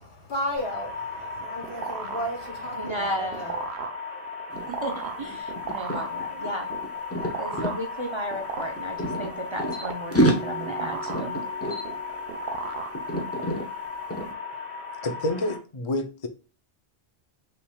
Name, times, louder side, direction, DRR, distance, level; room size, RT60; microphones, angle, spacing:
voice 1, 0.0-3.5, equal, 80° left, 1.7 m, -34 dB
sound 1, 0.6-15.6, left 5 dB, 10° right, 2.4 m, -36 dB
sound 2, 1.1-13.5, right 5 dB, 85° right, 1.1 m, -37 dB
voice 2, 2.8-3.7 4.7-6.7 7.2-11.4, right 1 dB, 30° right, 0.6 m, -34 dB
sound 3, 4.5-4.7 5.0-7.8 8.6-9.8 10.1-12.7 12.9-13.7 14.1-14.3, right 1 dB, 15° left, 0.9 m, -28 dB
voice 3, 15.0-16.3, left 1 dB, 35° left, 0.5 m, -28 dB
5.8 x 3.4 x 2.3 m
omnidirectional pair, 1.1 m